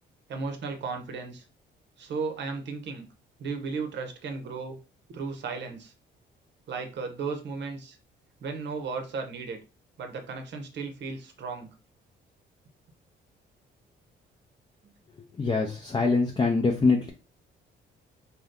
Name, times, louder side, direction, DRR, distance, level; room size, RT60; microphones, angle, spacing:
voice 1, 0.3-1.4 2.0-3.1 3.4-4.8 5.1-5.9 6.7-8.0 8.4-9.6 10.0-11.7 14.8-14.9, right 4 dB, 65° right, 5 dB, 0.8 m, -35 dB
voice 2, 15.4-17.1, left 4 dB, 25° left, 2 dB, 0.5 m, -24 dB
2.7 x 2.2 x 3.5 m, 0.33 s
cardioid pair, 90°, 20 cm